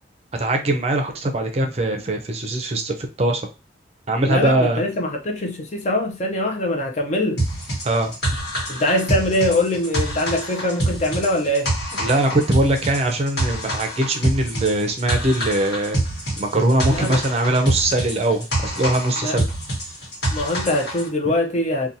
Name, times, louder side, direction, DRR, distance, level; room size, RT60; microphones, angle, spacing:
voice 1, 0.3-3.4 4.1-4.8 7.8-8.1 12.0-16.0 16.4-19.4, right 1 dB, 35° right, 0.5 m, -21 dB
voice 2, 4.3-7.4 8.7-11.7 16.9-17.2 19.2-19.4 20.3-21.9, left 1 dB, 40° left, 0.5 m, -23 dB
sound 1, 7.4-21.1, right 1 dB, 70° left, 1.3 m, -26 dB
2.7 x 2.2 x 2.6 m
head